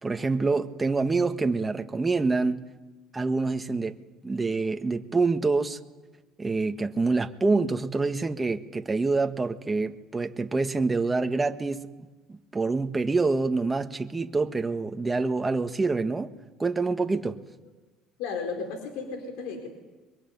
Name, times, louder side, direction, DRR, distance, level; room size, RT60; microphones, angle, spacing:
voice 1, 0.0-2.7 3.1-3.9 4.2-5.8 6.4-16.3 16.6-17.4, right 3 dB, 20° right, 6 dB, 1.7 m, -26 dB
voice 2, 18.2-19.7, left 5 dB, 80° left, 5 dB, 4.3 m, -34 dB
23.5 x 23.0 x 9.5 m, 1.2 s
supercardioid pair, 90°, 0 cm